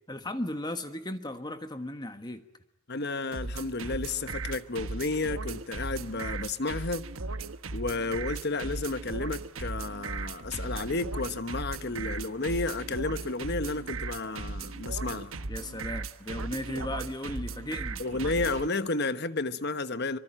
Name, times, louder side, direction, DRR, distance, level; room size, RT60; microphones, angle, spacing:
voice 1, 0.1-2.4 15.5-18.0, left 1 dB, 20° left, 1.3 m, -36 dB
voice 2, 2.9-7.1 7.7-15.4 18.0-20.2, left 3 dB, 50° left, 1.2 m, -32 dB
sound 1, 3.3-18.7, right 3 dB, 75° right, 1.2 m, -37 dB
25.0 x 24.0 x 8.9 m
head